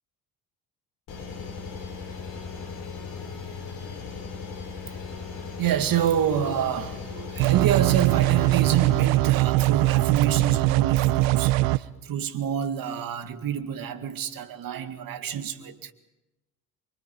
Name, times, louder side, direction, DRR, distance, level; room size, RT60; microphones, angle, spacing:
sound 1, 1.1-9.1, left 5 dB, 55° left, 6.3 m, -37 dB
voice 1, 5.6-15.9, right 9 dB, 50° right, 2.2 m, -28 dB
sound 2, 7.4-11.8, right 19 dB, 65° right, 0.7 m, -21 dB
27.5 x 24.0 x 5.3 m
hypercardioid pair, 55°, 44 cm